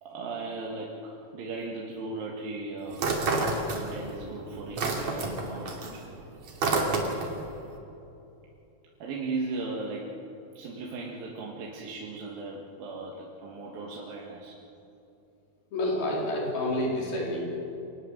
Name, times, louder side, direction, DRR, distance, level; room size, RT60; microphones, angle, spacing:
voice 1, 0.0-3.1 3.7-6.0 9.0-10.2 10.6-14.6, right 3 dB, 75° right, -2 dB, 3.6 m, -37 dB
sound 1, 2.9-4.2 4.5-7.4, right 3 dB, 50° right, 3.7 m, -28 dB
voice 2, 15.7-17.4, left 1 dB, 85° left, -3 dB, 6.1 m, -28 dB
26.0 x 19.5 x 7.5 m, 2.8 s
omnidirectional pair, 4.2 m